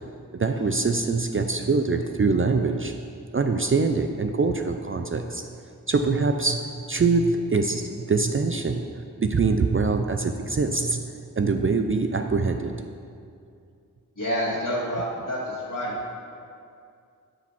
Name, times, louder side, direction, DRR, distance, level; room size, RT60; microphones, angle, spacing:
voice 1, 0.4-2.9 3.3-5.4 5.9-6.6 6.9-7.8 8.1-8.8 9.2-11.0 11.4-12.7, right 4 dB, 35° right, 6 dB, 0.5 m, -23 dB
voice 2, 14.2-15.9, equal, 60° left, -8 dB, 2.2 m, -28 dB
8.8 x 5.0 x 5.9 m, 2.4 s
cardioid pair, 50°, 36 cm